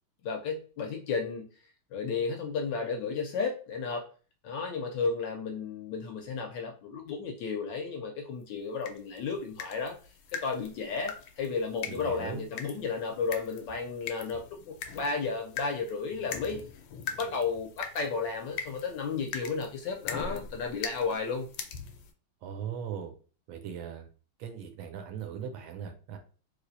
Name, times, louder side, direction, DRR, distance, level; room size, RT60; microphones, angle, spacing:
voice 1, 0.2-1.5 1.9-4.1 4.4-9.9 10.3-16.6 17.1-21.5, left 5 dB, 75° left, 2 dB, 1.1 m, -33 dB
sound 1, 8.8-22.1, left 6 dB, 90° left, 1.5 m, -42 dB
voice 2, 11.9-12.5 22.4-23.1 23.5-24.1 24.4-26.2, right 7 dB, 75° right, 5 dB, 1.3 m, -39 dB
3.3 x 3.2 x 2.5 m, 0.38 s
omnidirectional pair, 2.3 m